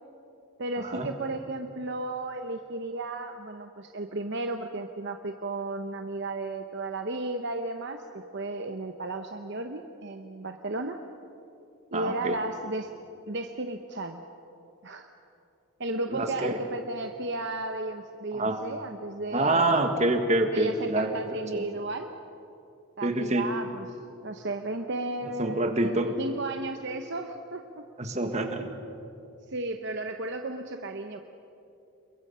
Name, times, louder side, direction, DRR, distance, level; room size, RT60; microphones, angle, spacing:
voice 1, 0.6-11.0 11.9-12.9 13.3-14.2 14.8-15.1 15.8-19.8 20.5-22.1 23.0-23.9 24.2-27.8 29.5-31.2, right 2 dB, 50° right, 5 dB, 0.9 m, -34 dB
voice 2, 11.9-12.4 16.1-16.6 18.3-18.6 19.3-21.6 23.0-23.5 25.4-26.1 28.0-28.7, right 2 dB, 30° right, 5 dB, 1.6 m, -26 dB
28.5 x 22.5 x 5.6 m, 2.8 s
head